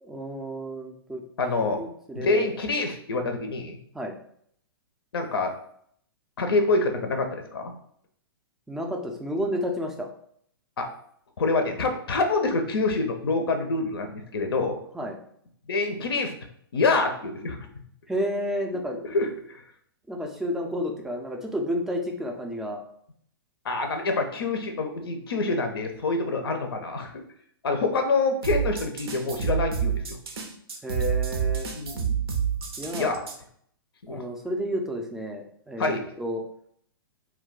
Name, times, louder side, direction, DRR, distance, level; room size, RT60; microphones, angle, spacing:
voice 1, 0.0-1.2 1.8-2.5 3.9-4.1 8.7-10.1 14.9-15.2 18.1-19.0 20.1-22.8 30.8-31.7 32.8-33.1 34.1-36.4, equal, 5° right, 1 dB, 0.3 m, -31 dB
voice 2, 1.4-1.9 2.1-3.8 5.1-5.5 6.4-7.7 10.8-10.9 11.4-14.8 15.7-16.3 16.7-17.7 19.1-19.6 23.6-27.1 27.6-30.2 31.7-32.2 33.0-33.2 34.0-34.2 35.8-36.0, left 3 dB, 75° left, 5 dB, 0.5 m, -26 dB
sound 1, 28.4-33.4, right 7 dB, 80° right, 0.6 m, -28 dB
2.2 x 2.2 x 3.8 m, 0.66 s
hypercardioid pair, 125°, 13 cm